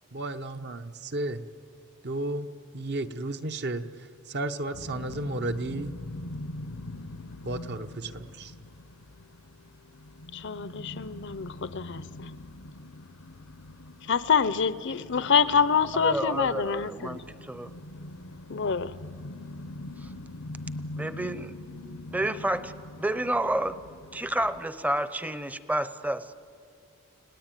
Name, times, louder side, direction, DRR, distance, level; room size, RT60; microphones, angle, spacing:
voice 1, 0.1-1.4 2.0-2.5 2.7-3.8 4.3-5.9 7.4-8.5, right 2 dB, 50° right, 8 dB, 1.0 m, -33 dB
sound 1, 4.7-24.6, left 1 dB, 80° left, 0.9 m, -43 dB
voice 2, 10.3-12.4 14.1-17.2 18.5-18.9, left 6 dB, 55° left, 15 dB, 0.7 m, -26 dB
voice 3, 16.0-17.8 20.0-20.1 21.0-21.5 22.1-23.8 24.1-26.3, right 1 dB, 5° right, 13 dB, 0.7 m, -30 dB
30.0 x 18.5 x 9.1 m, 2.4 s
head